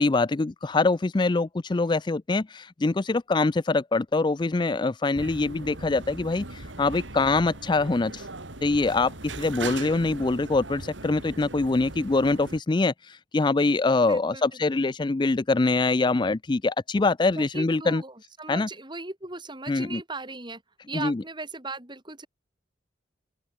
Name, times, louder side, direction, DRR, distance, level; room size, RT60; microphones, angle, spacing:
voice 1, 0.0-8.3 8.6-18.0 18.5-18.7 19.7-20.0 20.9-21.2, left 3 dB, 25° left, 0.4 m, -24 dB
sound 1, 5.1-12.6, right 2 dB, 85° right, 3.8 m, -39 dB
voice 2, 14.0-14.6 17.4-20.6 20.9-22.3, right 3 dB, 25° right, 4.4 m, -38 dB
open air
head